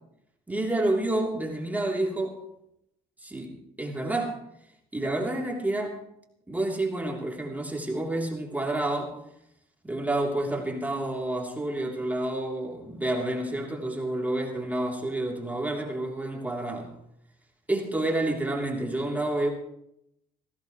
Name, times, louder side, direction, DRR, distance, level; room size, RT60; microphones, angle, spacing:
voice 1, 0.5-2.4 3.2-4.4 4.9-6.0 6.5-9.2 9.8-16.9 17.7-19.5, right 1 dB, 10° right, -1 dB, 3.2 m, -29 dB
20.0 x 16.0 x 3.2 m, 0.78 s
cardioid pair, 110°, 17 cm